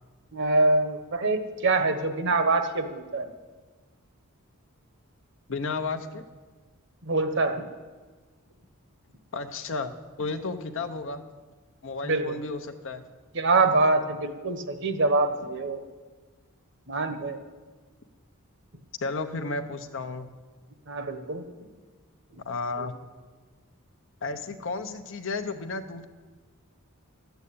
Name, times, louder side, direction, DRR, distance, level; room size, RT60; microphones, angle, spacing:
voice 1, 0.3-3.3 7.0-7.6 12.0-12.4 13.3-15.8 16.9-17.4 20.9-21.4 22.8-22.9, right 3 dB, 55° right, 8 dB, 1.0 m, -25 dB
voice 2, 5.5-6.2 9.3-11.2 11.8-13.0 19.0-20.3 22.4-22.9 24.2-26.0, left 3 dB, 60° left, 8 dB, 0.8 m, -33 dB
12.5 x 8.1 x 8.6 m, 1.4 s
head